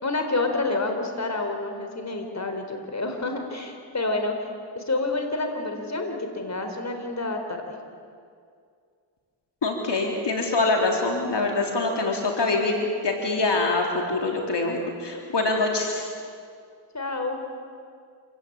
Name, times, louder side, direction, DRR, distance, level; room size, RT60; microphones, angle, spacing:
voice 1, 0.0-4.5 4.7-7.8 16.9-17.4, left 2 dB, 35° left, 5 dB, 4.2 m, -28 dB
voice 2, 9.6-16.1, left 3 dB, 55° left, 1 dB, 4.0 m, -24 dB
27.5 x 18.0 x 8.9 m, 2.3 s
cardioid pair, 50°, 48 cm